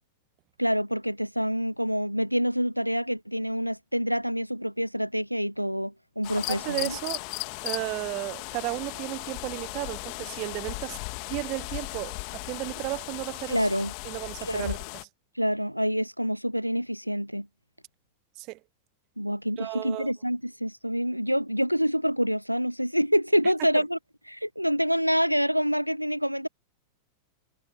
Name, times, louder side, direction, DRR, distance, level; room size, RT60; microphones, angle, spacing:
voice 1, 0.6-6.9 13.5-13.9 14.4-14.8 15.4-17.5 19.2-24.0 24.3-26.5, equal, 90° right, 0.6 m, -27 dB
sound 1, 6.2-15.0, left 40 dB or more, 45° left, 2.1 m, -36 dB
voice 2, 6.4-7.2 7.6-11.0 11.3-13.7 14.0-15.1 18.4-18.6 19.6-20.1 23.4-23.8, right 24 dB, 40° right, 1.1 m, -34 dB
figure-of-eight pair, 90°, 0 cm